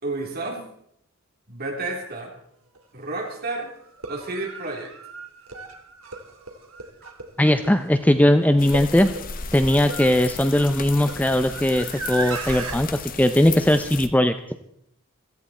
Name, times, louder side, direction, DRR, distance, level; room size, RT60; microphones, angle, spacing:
voice 1, 0.0-0.7 1.5-2.3 2.9-3.7 4.1-4.9, right 2 dB, 45° right, 0 dB, 3.4 m, -31 dB
sound 1, 2.7-2.8 3.9-12.8, right 3 dB, 65° right, 2.2 m, -37 dB
voice 2, 7.4-9.1 9.5-14.3, left 1 dB, 5° left, 9 dB, 0.5 m, -19 dB
sound 2, 8.6-14.1, left 5 dB, 40° left, 0.9 m, -35 dB
16.5 x 14.0 x 4.3 m, 0.73 s
head